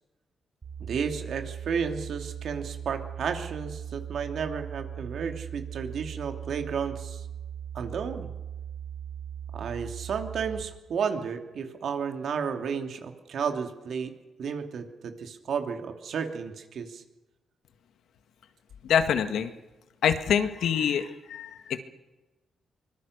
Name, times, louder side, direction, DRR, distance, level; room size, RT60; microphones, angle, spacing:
sound 1, 0.6-10.6, right 9 dB, 35° right, 6.5 m, -39 dB
voice 1, 0.8-7.3 7.7-8.3 9.5-14.1 14.4-17.0, right 6 dB, 70° right, 5 dB, 2.7 m, -32 dB
voice 2, 18.8-19.5 20.0-21.8, left 8 dB, 80° left, 9 dB, 1.7 m, -25 dB
24.5 x 21.5 x 6.7 m, 1.1 s
cardioid pair, 95°, 0 cm